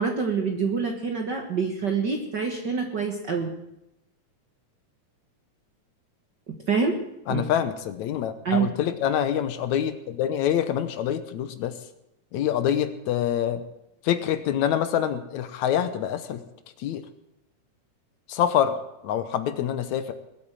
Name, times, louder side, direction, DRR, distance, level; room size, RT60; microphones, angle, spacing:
voice 1, 0.0-3.5 6.5-7.0 7.3-7.4 8.4-8.7, right 5 dB, 50° right, 4 dB, 1.5 m, -26 dB
voice 2, 7.3-11.8 12.3-13.6 14.0-16.4 16.8-17.0 18.3-18.8 19.0-20.1, left 10 dB, 75° left, 11 dB, 2.1 m, -26 dB
20.5 x 8.6 x 7.4 m, 0.88 s
omnidirectional pair, 3.6 m